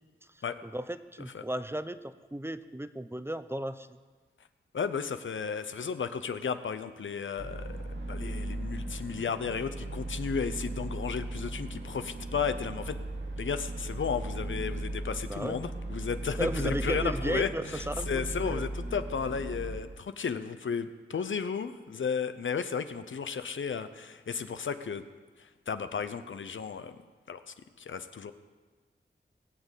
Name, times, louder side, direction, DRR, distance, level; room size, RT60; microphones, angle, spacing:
voice 1, 0.6-4.0 15.3-15.6 16.4-18.6, right 1 dB, 10° right, 12 dB, 0.7 m, -35 dB
voice 2, 4.7-7.8 8.1-13.0 13.4-25.1 25.4-26.9 27.3-27.4 27.8-28.3, left 6 dB, 85° left, 10 dB, 0.8 m, -34 dB
sound 1, 7.4-19.8, right 2 dB, 70° right, 1.9 m, -37 dB
19.5 x 7.5 x 8.4 m, 1.4 s
wide cardioid pair, 70°, 19 cm